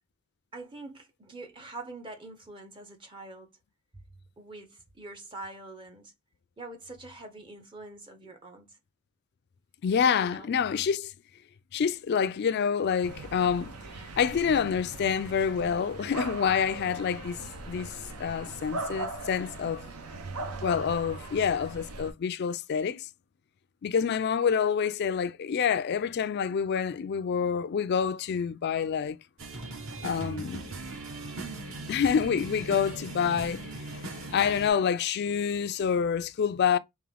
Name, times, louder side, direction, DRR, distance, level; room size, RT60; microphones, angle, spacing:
voice 1, 0.5-3.5 4.4-6.1 6.6-8.8 10.2-10.5, right 2 dB, 20° right, 0.6 m, -44 dB
voice 2, 9.8-11.1 11.7-13.8 14.2-17.4 17.7-19.9 20.6-23.1 23.8-29.2 30.0-30.7 31.9-36.8, left 7 dB, 50° left, 0.3 m, -27 dB
sound 1, 13.0-22.1, right 2 dB, 85° right, 0.8 m, -39 dB
sound 2, 29.4-34.7, right 2 dB, 60° right, 1.0 m, -39 dB
3.6 x 2.9 x 3.3 m
head